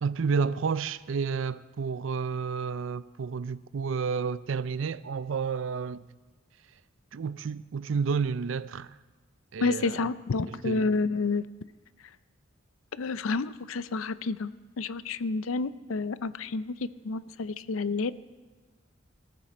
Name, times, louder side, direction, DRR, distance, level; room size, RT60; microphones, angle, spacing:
voice 1, 0.0-6.1 7.1-8.9 9.5-10.0 10.5-10.9, right 5 dB, 70° right, 0.5 m, -30 dB
voice 2, 9.6-11.4 13.0-14.5 14.8-18.2, left 3 dB, 85° left, 0.5 m, -29 dB
18.0 x 14.5 x 4.4 m
head